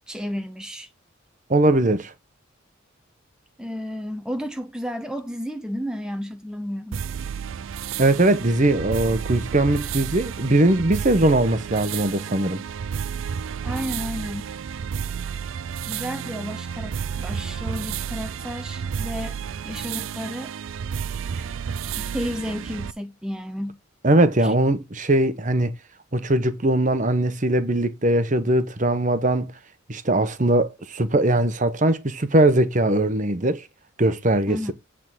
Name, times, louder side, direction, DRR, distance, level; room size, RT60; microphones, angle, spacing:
voice 1, 0.1-0.9 3.6-7.0 13.6-14.5 15.9-19.4 19.6-20.5 22.0-23.8 24.4-24.5 34.5-34.7, equal, 5° right, 0.5 m, -32 dB
voice 2, 1.5-2.1 8.0-12.6 21.3-21.4 24.0-25.7 26.1-29.5 29.9-33.6 34.0-34.7, right 1 dB, 35° right, 0.9 m, -20 dB
sound 1, 6.9-22.9, right 7 dB, 70° right, 0.4 m, -31 dB
8.9 x 3.7 x 6.0 m
head